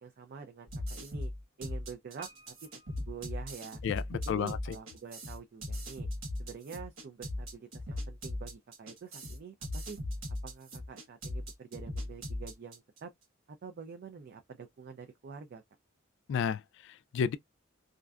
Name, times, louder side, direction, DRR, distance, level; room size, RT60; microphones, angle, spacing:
voice 1, 0.0-1.3 1.6-2.5 3.1-3.8 4.3-6.1 6.4-10.0 10.4-13.1 13.6-15.6, right 5 dB, 50° right, 0.4 m, -47 dB
sound 1, 0.7-13.0, left 1 dB, 85° right, 1.0 m, -39 dB
Piano, 2.2-4.2 4.5-4.6, right 2 dB, 30° right, 0.8 m, -58 dB
voice 2, 3.8-4.8 16.3-17.4, left 7 dB, 65° left, 0.3 m, -32 dB
2.5 x 2.1 x 2.3 m
head